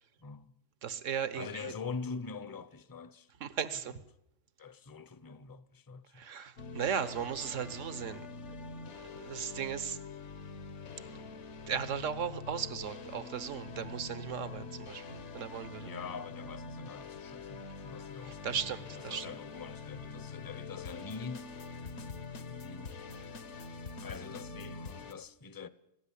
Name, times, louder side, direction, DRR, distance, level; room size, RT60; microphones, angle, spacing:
voice 1, 0.2-0.5 1.3-3.3 4.6-6.3 7.6-7.8 15.8-21.5 22.5-23.0 24.0-25.7, left 5 dB, 20° left, 0.6 m, -44 dB
voice 2, 0.8-1.7 3.4-4.0 6.1-8.3 8.7-10.0 11.2-11.3 11.7-15.9 18.3-19.3, right 7 dB, 80° right, 1.5 m, -37 dB
sound 1, 6.6-25.1, left 4 dB, 65° left, 1.4 m, -45 dB
19.5 x 16.5 x 10.0 m
omnidirectional pair, 1.3 m